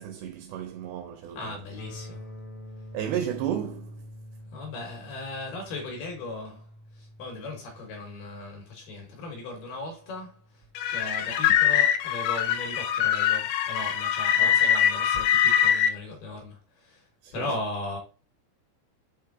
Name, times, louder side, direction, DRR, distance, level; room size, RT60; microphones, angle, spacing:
voice 1, 0.0-1.6 2.9-4.0 14.4-14.6 17.2-17.5, right 9 dB, 80° right, 2.6 m, -33 dB
voice 2, 1.3-2.3 4.5-6.7 6.9-10.4 10.9-17.1 17.3-18.0, left 2 dB, 65° left, 2.7 m, -37 dB
sound 1, 1.8-11.7, equal, 25° left, 0.7 m, -47 dB
sound 2, 10.8-15.9, left 9 dB, 85° left, 3.1 m, -23 dB
7.0 x 3.2 x 4.7 m
omnidirectional pair, 5.5 m